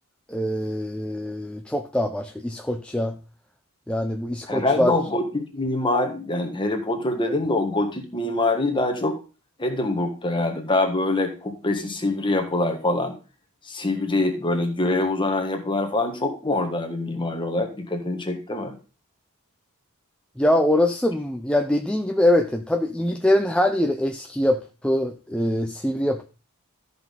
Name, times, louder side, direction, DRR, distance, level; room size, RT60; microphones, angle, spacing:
voice 1, 0.3-3.2 3.9-4.9 20.4-26.2, left 1 dB, 5° left, 4 dB, 0.6 m, -23 dB
voice 2, 4.5-9.2 9.6-13.2 13.7-18.8, left 2 dB, 20° left, 4 dB, 1.6 m, -24 dB
13.5 x 5.6 x 3.8 m, 0.33 s
head